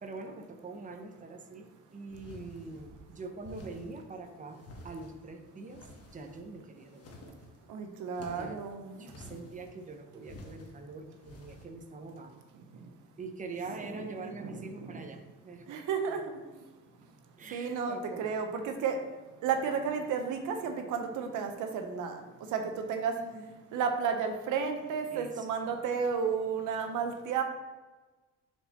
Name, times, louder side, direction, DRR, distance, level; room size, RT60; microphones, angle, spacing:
voice 1, 0.0-7.3 8.3-8.6 9.0-12.4 13.2-16.2 17.4-18.3 23.1-23.5 25.1-25.5, right 3 dB, 25° right, 5 dB, 0.8 m, -44 dB
sound 1, 2.1-3.0 3.4-4.0 4.5-5.2 5.7-6.5 6.9-7.6 8.1-8.6 9.0-9.7 10.2-10.7 11.2-11.6, left 2 dB, 55° left, 1.2 m, -50 dB
voice 2, 7.7-9.1 13.8-15.0 15.7-16.4 17.5-19.0 19.4-22.2 22.5-22.6 22.9-23.1 23.7-27.4, right 6 dB, 85° right, 5 dB, 0.8 m, -32 dB
4.5 x 4.1 x 5.6 m, 1.2 s
cardioid pair, 90°, 30 cm